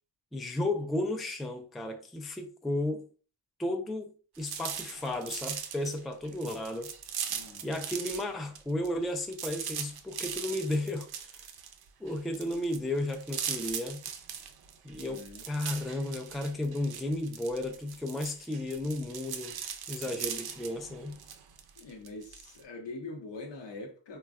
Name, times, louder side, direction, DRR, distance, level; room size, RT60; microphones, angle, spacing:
voice 1, 0.3-3.1 3.6-6.9 7.6-11.4 12.0-14.0 14.8-19.6 19.9-21.2, left 1 dB, ahead, 0.4 m, -34 dB
sound 1, 4.3-8.3 8.5-22.6, right 8 dB, 55° right, 0.5 m, -40 dB
voice 2, 7.3-7.7 14.9-15.5 21.8-24.2, left 2 dB, 65° left, 0.9 m, -43 dB
3.2 x 2.3 x 2.3 m
supercardioid pair, 40°, 46 cm